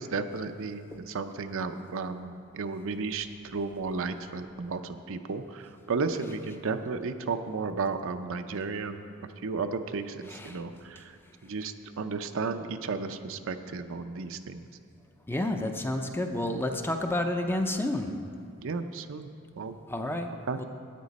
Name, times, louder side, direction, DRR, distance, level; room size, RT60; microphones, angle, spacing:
voice 1, 0.0-9.1 9.4-11.2 11.4-14.7 18.6-19.3 19.6-19.8 20.5-20.6, right 4 dB, 65° right, 8 dB, 0.6 m, -33 dB
voice 2, 10.2-10.6 15.3-18.1 19.9-20.6, left 1 dB, 10° left, 5 dB, 0.6 m, -30 dB
13.0 x 9.2 x 4.1 m, 2.4 s
head